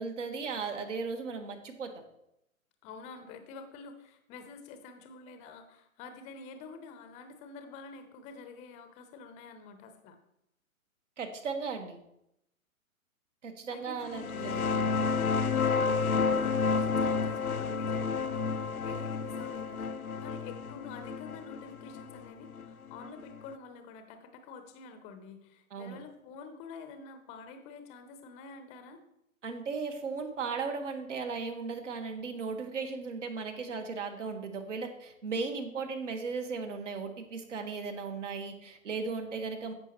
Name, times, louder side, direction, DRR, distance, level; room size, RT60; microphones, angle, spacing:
voice 1, 0.0-2.0 11.2-12.0 13.4-15.4 25.7-26.0 29.4-39.7, right 4 dB, 60° right, 6 dB, 1.6 m, -36 dB
voice 2, 2.8-10.2 13.7-14.3 15.6-29.0, left 4 dB, 15° left, 7 dB, 0.8 m, -48 dB
sound 1, 14.1-23.4, left 5 dB, 85° left, 0.8 m, -30 dB
14.0 x 5.6 x 3.1 m, 0.80 s
figure-of-eight pair, 125°, 42 cm